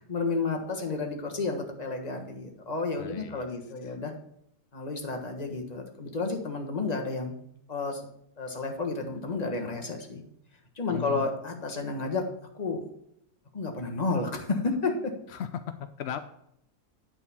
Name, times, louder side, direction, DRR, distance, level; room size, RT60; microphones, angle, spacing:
voice 1, 0.0-4.1 4.7-7.3 7.7-8.0 8.4-10.2 10.8-12.3 12.5-12.8 13.5-15.1, left 3 dB, 25° left, 3 dB, 1.3 m, -31 dB
voice 2, 3.0-3.5 3.8-4.0 10.9-11.3 15.3-16.2, left 9 dB, 75° left, 10 dB, 0.5 m, -37 dB
9.8 x 4.3 x 7.0 m, 0.73 s
omnidirectional pair, 1.7 m